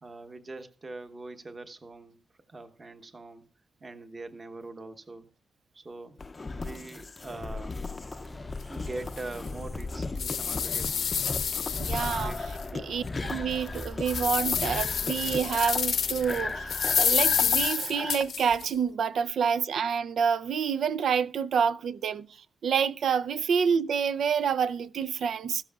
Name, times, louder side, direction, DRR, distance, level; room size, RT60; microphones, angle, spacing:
voice 1, 0.0-2.2 2.5-3.4 3.8-5.3 5.7-6.2 6.5-7.8 8.7-11.2 11.4-12.5, right 2 dB, 30° right, 1.1 m, -43 dB
sound 1, 6.2-18.2, left 3 dB, 25° left, 0.6 m, -36 dB
sound 2, 8.0-17.7, left 1 dB, 5° right, 0.9 m, -44 dB
sound 3, 8.6-8.7 9.2-9.3 9.8-12.6 13.1-13.2 13.7-16.4 16.7-18.6, left 7 dB, 70° left, 0.8 m, -28 dB
voice 2, 11.8-22.3 22.6-25.6, right 7 dB, 75° right, 0.5 m, -28 dB
15.5 x 13.0 x 2.4 m
wide cardioid pair, 155°, 0 cm